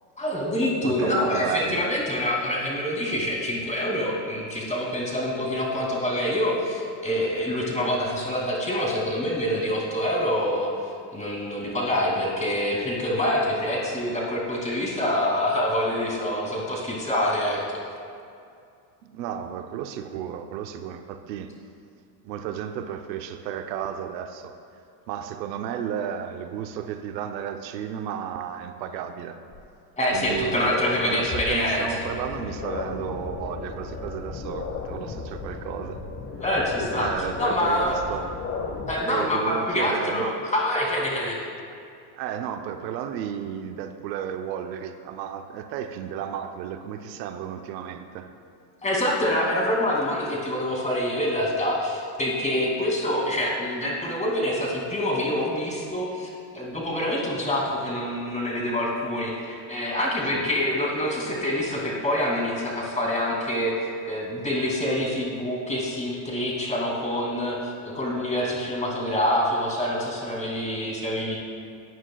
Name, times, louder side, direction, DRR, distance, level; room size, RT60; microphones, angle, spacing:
voice 1, 0.2-10.7 11.1-17.6 30.0-32.0 36.4-37.1 37.4-38.0 38.9-41.4 48.8-71.4, left 1 dB, 15° left, -3 dB, 2.6 m, -26 dB
voice 2, 0.8-1.8 19.0-21.5 22.2-24.6 25.1-29.4 30.1-36.0 37.0-38.3 39.1-40.4 42.1-48.3 60.3-60.5, right 9 dB, 85° right, 7 dB, 0.8 m, -33 dB
sound 1, 29.5-29.6 30.1-38.9, left 4 dB, 35° left, 1.1 m, -34 dB
16.5 x 9.3 x 2.3 m, 2.4 s
supercardioid pair, 115°, 50 cm